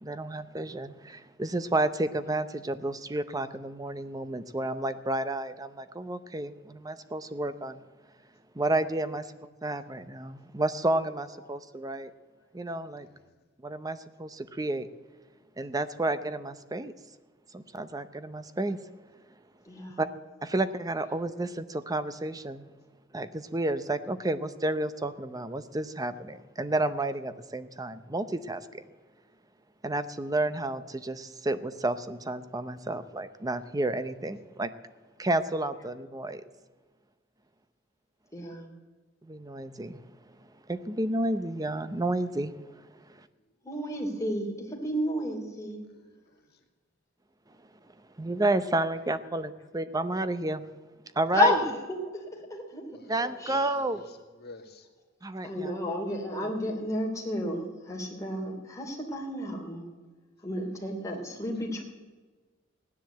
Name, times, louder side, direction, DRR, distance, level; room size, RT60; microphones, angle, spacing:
voice 1, 0.0-7.8 8.5-9.3 9.6-12.1 12.5-13.1 13.6-14.9 15.6-16.9 17.5-18.8 20.0-20.1 20.4-22.7 23.1-28.8 29.8-34.7 35.2-36.4 39.3-40.0 40.7-42.5 48.2-50.6 51.2-51.6 53.1-54.0 55.2-55.7 56.4-56.5, right 2 dB, 20° right, 12 dB, 0.7 m, -31 dB
voice 2, 19.7-20.0 38.3-38.7 43.6-45.8 51.3-52.2 52.5-52.9 53.4-53.6 55.4-59.9 60.4-61.8, left 1 dB, 15° left, 0 dB, 2.9 m, -31 dB
voice 3, 54.4-54.9 61.1-61.4, left 3 dB, 55° left, 4 dB, 1.9 m, -49 dB
16.0 x 10.5 x 7.9 m, 1.3 s
head